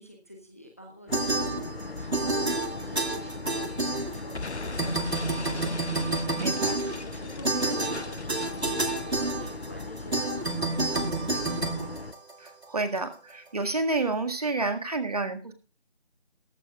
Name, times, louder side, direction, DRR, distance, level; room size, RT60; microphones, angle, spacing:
voice 1, 0.0-6.0 6.8-11.8, equal, 15° left, 2 dB, 0.9 m, -48 dB
sound 1, 1.1-12.1, left 3 dB, 60° left, 1.0 m, -39 dB
sound 2, 1.1-4.5 4.8-12.6, right 2 dB, 75° right, 2.0 m, -29 dB
Explosion, 4.3-9.1, left 3 dB, 90° left, 1.0 m, -40 dB
voice 2, 6.4-6.8 12.4-15.5, right 3 dB, 35° right, 7 dB, 1.8 m, -29 dB
17.0 x 14.5 x 2.3 m, 0.36 s
figure-of-eight pair, 165°, 33 cm